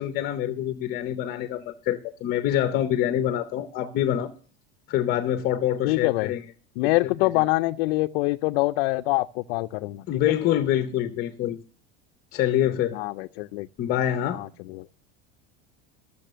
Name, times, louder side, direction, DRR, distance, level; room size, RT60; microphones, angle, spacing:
voice 1, 0.0-4.3 4.9-6.4 6.8-6.9 10.1-11.6 12.3-13.0 13.8-14.4, left 11 dB, 30° left, 0.7 m, -25 dB
voice 2, 5.8-6.3 6.8-10.1 12.9-13.7 14.3-14.9, left 20 dB, 70° left, 0.5 m, -25 dB
13.5 x 7.0 x 6.7 m
cardioid pair, 175°, 32 cm